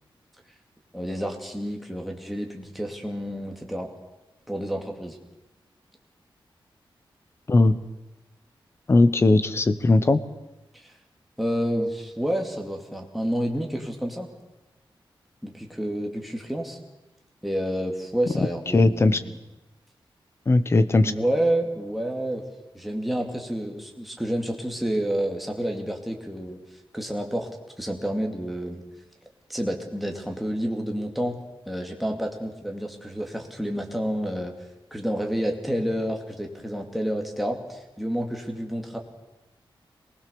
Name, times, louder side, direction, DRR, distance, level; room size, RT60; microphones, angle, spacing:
voice 1, 0.9-3.9 4.5-5.2 10.7-10.9 11.4-14.3 15.4-16.8 17.4-19.4 21.0-22.4 22.7-26.6 26.9-27.5 27.8-28.8 29.5-31.4 31.7-34.5 34.9-39.0, equal, ahead, 2 dB, 2.4 m, -29 dB
voice 2, 8.9-10.2 18.7-19.2 20.5-21.1, left 2 dB, 30° left, 12 dB, 1.0 m, -18 dB
23.5 x 20.0 x 7.0 m, 1.0 s
wide cardioid pair, 175°, 9 cm